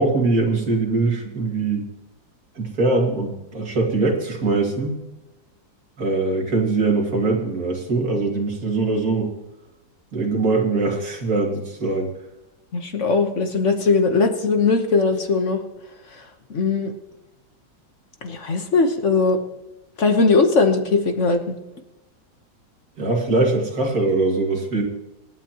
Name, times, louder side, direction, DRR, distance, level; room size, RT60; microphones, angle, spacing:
voice 1, 0.0-1.8 2.6-5.0 6.0-9.3 10.1-12.1 23.0-24.8, right 3 dB, 55° right, 0 dB, 2.8 m, -22 dB
voice 2, 12.7-15.6 16.1-16.2 16.5-16.9 18.2-19.4 20.0-21.6, left 4 dB, 45° left, 6 dB, 1.2 m, -19 dB
26.0 x 9.1 x 2.9 m, 0.99 s
omnidirectional pair, 2.0 m